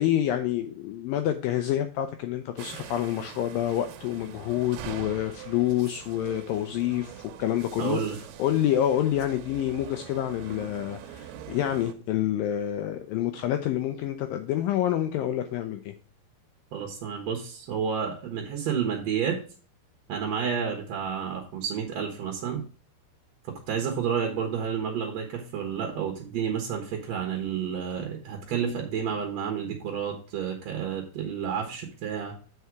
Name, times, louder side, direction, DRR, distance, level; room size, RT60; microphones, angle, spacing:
voice 1, 0.0-8.0 8.4-15.9, left 12 dB, 85° left, 7 dB, 2.0 m, -27 dB
sound 1, 2.6-11.9, right 9 dB, 80° right, 2.8 m, -44 dB
voice 2, 7.8-8.2 16.7-19.4 20.1-22.6 23.7-32.3, right 7 dB, 60° right, 2 dB, 1.9 m, -30 dB
8.2 x 5.6 x 4.7 m, 0.39 s
omnidirectional pair, 4.7 m